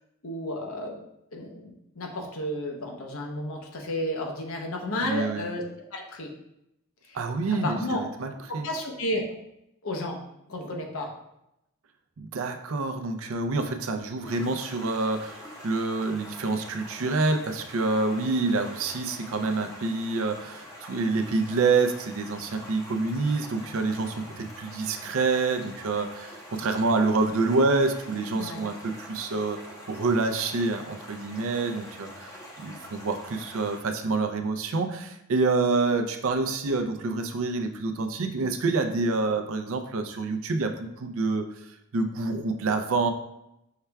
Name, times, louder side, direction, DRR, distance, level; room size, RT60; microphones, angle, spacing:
voice 1, 0.2-1.0 1.3-5.6 5.9-6.3 7.1-7.2 7.6-8.0 8.6-9.2 9.8-10.2 10.5-11.1 28.3-28.6, left 1 dB, 70° left, 1 dB, 0.8 m, -32 dB
voice 2, 5.0-5.5 7.1-8.7 12.2-29.6 29.9-41.5 41.9-43.1, right 3 dB, 70° right, 7 dB, 0.4 m, -27 dB
Stream, 14.2-33.8, equal, 15° left, 0.6 m, -45 dB
5.6 x 2.3 x 3.3 m, 0.84 s
head